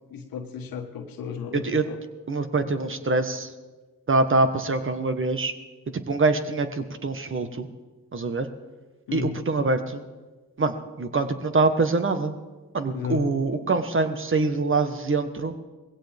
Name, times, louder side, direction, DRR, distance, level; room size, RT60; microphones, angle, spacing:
voice 1, 0.1-2.0 9.1-9.4 12.9-13.3, left 7 dB, 75° left, 5 dB, 1.6 m, -34 dB
voice 2, 1.5-1.9 2.3-3.5 4.1-5.5 5.9-7.7 8.1-8.5 9.1-10.0 10.6-12.3 12.7-15.5, right 3 dB, 35° right, 9 dB, 1.4 m, -24 dB
20.0 x 16.5 x 3.6 m, 1.2 s
supercardioid pair, 60°, 35 cm